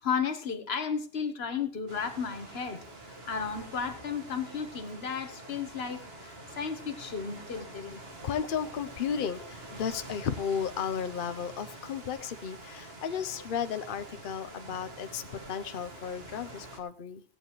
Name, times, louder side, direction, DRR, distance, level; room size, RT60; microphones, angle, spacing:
voice 1, 0.0-8.0, left 6 dB, 80° left, 8 dB, 1.4 m, -34 dB
sound 1, 1.9-16.8, right 2 dB, 75° right, 1.7 m, -46 dB
voice 2, 8.2-17.2, left 7 dB, 60° left, 11 dB, 0.8 m, -34 dB
18.0 x 9.2 x 3.1 m, 0.41 s
omnidirectional pair, 1.0 m